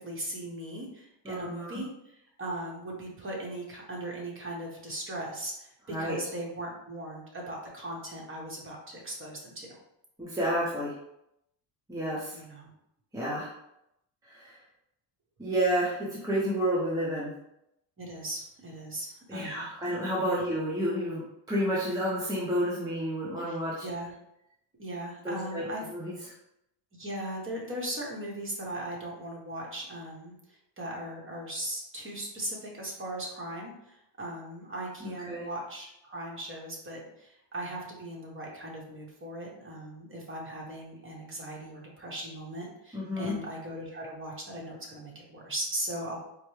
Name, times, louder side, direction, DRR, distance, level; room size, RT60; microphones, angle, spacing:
voice 1, 0.0-1.9 2.4-9.7 12.3-12.7 18.0-19.7 20.3-20.4 23.5-23.6 23.8-24.1 24.8-25.8 27.0-30.3 30.8-46.2, right 1 dB, 25° right, -2 dB, 1.2 m, -38 dB
voice 2, 1.2-1.8 5.9-6.2 10.2-10.9 11.9-12.4 13.1-13.5 14.3-14.6 15.4-17.3 19.3-21.2 21.5-23.9 25.2-25.6 25.9-26.1 35.0-35.4 42.9-43.3, equal, 5° right, -7 dB, 0.8 m, -30 dB
4.5 x 2.2 x 3.2 m, 0.82 s
cardioid pair, 105°, 48 cm